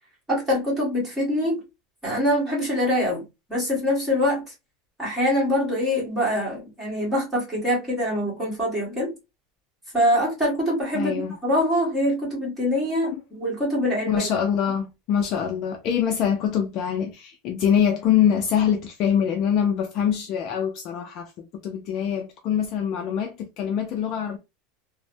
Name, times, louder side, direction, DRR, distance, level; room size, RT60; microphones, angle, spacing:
voice 1, 0.3-1.6 2.0-3.2 3.5-4.5 5.0-9.1 9.9-14.3, equal, 10° right, 1.4 m, -24 dB
voice 2, 10.9-11.3 13.1-13.2 14.1-24.4, left 8 dB, 35° left, 0.4 m, -24 dB
3.1 x 2.0 x 2.6 m
supercardioid pair, 180°, 0 cm